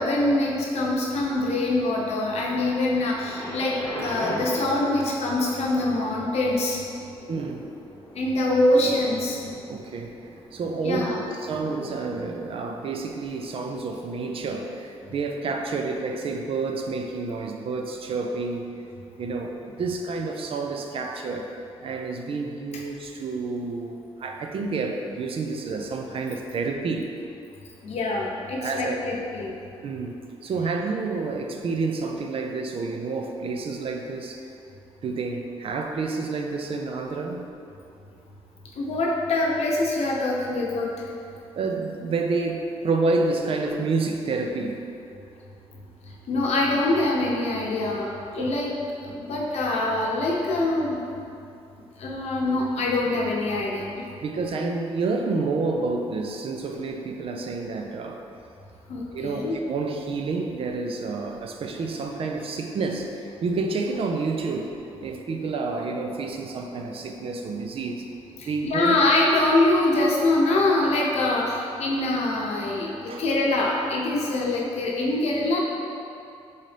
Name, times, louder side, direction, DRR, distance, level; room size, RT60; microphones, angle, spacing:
voice 1, 0.0-6.8 8.1-9.4 10.8-11.2 27.8-29.5 38.8-41.1 46.1-48.7 49.0-51.0 52.0-54.0 58.9-59.5 68.4-75.6, left 2 dB, 70° left, -2 dB, 0.8 m, -24 dB
Thunder, 3.1-15.0 15.7-15.8, equal, 20° left, 1.0 m, -40 dB
voice 2, 7.3-7.7 9.7-18.7 19.2-27.1 28.5-29.0 29.8-34.5 35.0-37.5 41.6-44.9 48.4-48.5 54.2-58.2 59.1-59.4 59.7-68.1 68.4-69.0 73.1-73.2, right 3 dB, 55° right, 3 dB, 0.4 m, -29 dB
4.0 x 3.8 x 3.3 m, 2.5 s
cardioid pair, 90°, 11 cm